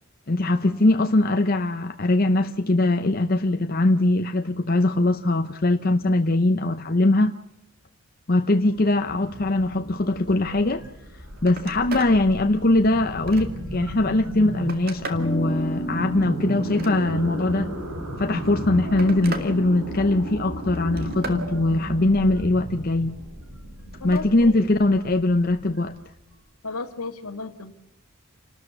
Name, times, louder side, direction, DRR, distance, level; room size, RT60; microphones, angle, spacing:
voice 1, 0.3-7.3 8.3-10.8 11.4-17.7 18.2-23.2 24.0-26.0, left 2 dB, 40° left, 0.8 m, -21 dB
sound 1, 8.5-26.3, equal, 85° right, 4.3 m, -34 dB
Telephone, 10.9-11.1 11.4-12.2 12.7-13.7 14.3-15.3 16.6-17.4 18.4-19.5 19.9-20.3 20.7-21.5 23.9-24.3 25.7-25.8, right 3 dB, 40° right, 2.3 m, -38 dB
sound 2, 13.4-14.6 15.1-20.3, equal, 25° left, 1.7 m, -36 dB
voice 2, 24.0-25.1 26.6-27.7, left 3 dB, 75° left, 1.9 m, -34 dB
29.5 x 13.0 x 6.9 m
head